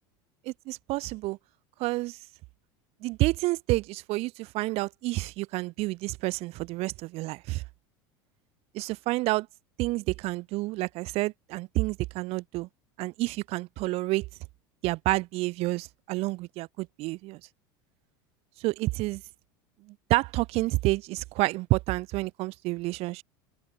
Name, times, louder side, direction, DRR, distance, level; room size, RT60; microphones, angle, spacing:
voice 1, 0.5-1.4 1.8-2.2 3.0-7.6 8.7-9.5 9.8-12.7 13.0-14.3 14.8-17.4 18.6-19.2 19.9-23.2, right 21 dB, 60° right, 7.6 m, -29 dB
open air
supercardioid pair, 100°, 12 cm